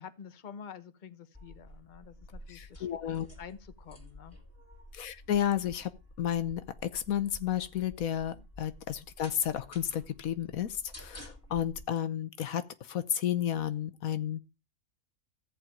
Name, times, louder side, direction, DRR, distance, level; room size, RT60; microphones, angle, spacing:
voice 1, 0.0-2.9 3.4-4.4 8.3-8.4, left 7 dB, 35° left, 1.0 m, -48 dB
sound 1, 1.3-11.8, equal, 10° left, 2.2 m, -51 dB
voice 2, 2.5-3.3 4.9-5.9 6.2-14.4, left 10 dB, 80° left, 1.3 m, -32 dB
14.0 x 5.1 x 8.8 m
omnidirectional pair, 1.5 m